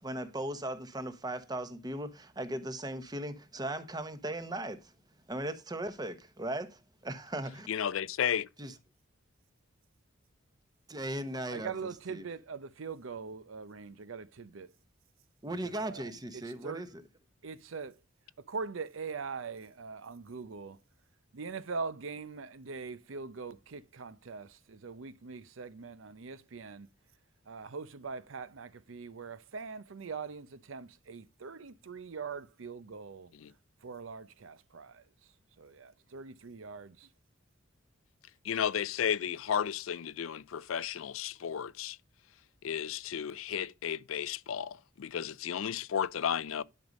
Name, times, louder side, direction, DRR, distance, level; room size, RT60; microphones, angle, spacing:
voice 1, 0.0-4.9 5.3-7.7 8.6-8.7 10.9-11.7 12.1-12.2 15.4-16.9, right 1 dB, 20° right, 1.0 m, -38 dB
voice 2, 7.7-8.5 33.4-33.5 38.4-42.0 42.6-46.6, left 8 dB, 85° left, 0.4 m, -33 dB
voice 3, 11.5-14.7 15.4-16.9 17.4-18.0 18.4-20.8 21.3-26.9 27.5-33.3 33.8-35.1 35.6-37.1, right 5 dB, 75° right, 0.6 m, -42 dB
11.0 x 5.3 x 5.3 m
head